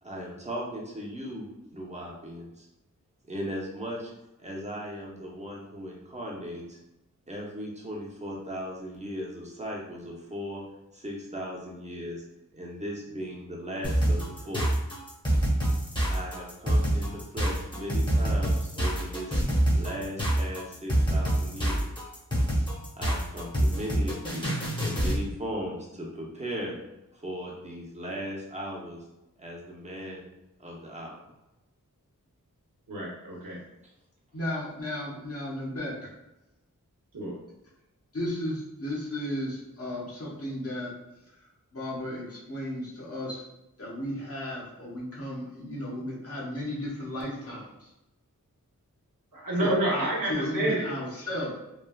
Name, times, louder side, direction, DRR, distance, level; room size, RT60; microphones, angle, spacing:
voice 1, 0.0-2.7 3.3-4.1 4.4-6.8 7.3-10.6 10.9-12.2 12.5-14.7 16.1-19.3 19.7-22.0 23.0-24.5 24.8-26.7 27.1-29.0 29.4-30.3 30.6-31.2, equal, 20° right, -3 dB, 0.8 m, -37 dB
sound 1, 13.8-25.2, right 1 dB, 15° left, 1.0 m, -26 dB
voice 2, 32.9-33.6 37.1-37.3 49.3-50.8, right 1 dB, 85° right, -4 dB, 0.9 m, -28 dB
voice 3, 34.3-36.0 38.1-40.9 41.4-41.5 41.7-43.4 43.8-47.9 49.6-51.5, left 1 dB, 45° left, -5 dB, 1.0 m, -34 dB
3.3 x 2.3 x 2.3 m, 0.94 s
wide cardioid pair, 75°, 32 cm